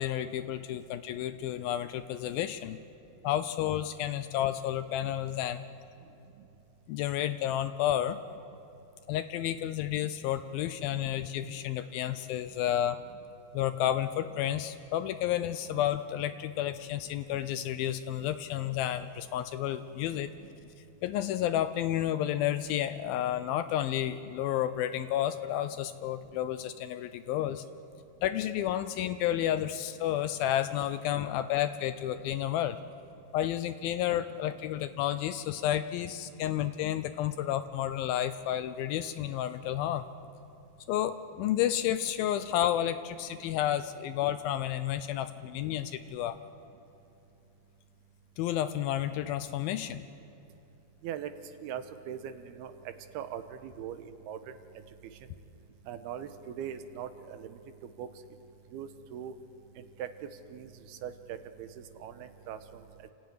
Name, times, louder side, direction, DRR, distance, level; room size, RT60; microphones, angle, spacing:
voice 1, 0.0-2.8 3.2-5.6 6.9-8.2 9.1-13.0 13.5-20.3 21.0-27.6 28.2-32.8 33.3-40.1 40.9-46.4 48.4-50.0, left 11 dB, 80° left, 11 dB, 2.2 m, -31 dB
voice 2, 51.6-52.7 53.1-54.4 55.9-58.1 58.7-59.3 59.8-60.1 60.5-62.8, right 9 dB, 80° right, 9 dB, 2.9 m, -41 dB
29.0 x 14.5 x 9.4 m, 2.8 s
omnidirectional pair, 4.6 m